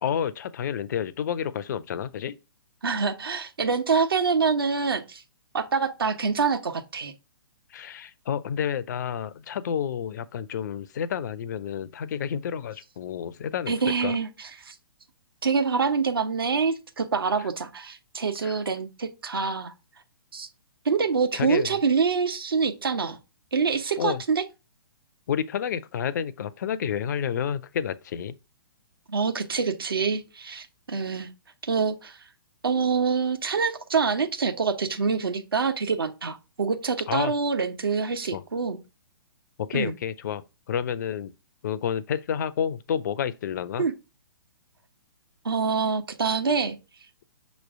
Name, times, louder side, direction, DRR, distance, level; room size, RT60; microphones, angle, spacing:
voice 1, 0.0-2.4 7.7-13.7 14.0-14.2 17.4-17.5 18.4-18.6 21.3-21.8 24.0-24.2 25.3-28.3 37.1-37.3 38.3-38.4 39.6-40.4 40.7-41.3 41.6-43.9, left 8 dB, 50° left, 0.6 m, -30 dB
voice 2, 2.8-5.2 5.5-7.1 13.7-14.3 14.6-14.7 15.4-19.7 20.3-20.5 20.8-23.2 23.5-24.4 29.1-31.3 31.7-32.2 32.6-38.8 39.7-39.9 43.8-43.9 45.4-46.8, right 5 dB, 70° right, 1.2 m, -26 dB
6.4 x 3.1 x 4.7 m
figure-of-eight pair, 120°, 13 cm